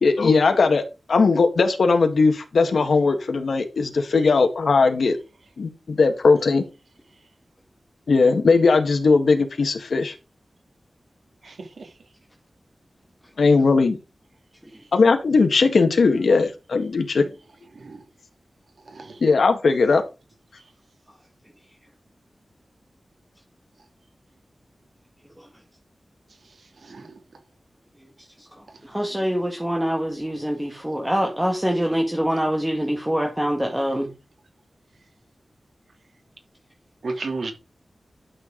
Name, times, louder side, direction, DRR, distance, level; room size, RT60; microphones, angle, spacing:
voice 1, 0.0-5.2 5.6-6.6 8.1-10.1 13.4-14.0 14.9-17.3 19.2-20.0, left 4 dB, 85° left, 1.6 m, -18 dB
voice 2, 11.4-11.9 17.8-18.0 18.9-19.2 26.9-27.2 37.0-37.5, right 3 dB, 80° right, 3.0 m, -33 dB
voice 3, 28.9-34.1, equal, 10° right, 2.2 m, -24 dB
12.0 x 7.0 x 3.9 m
wide cardioid pair, 95°, 0 cm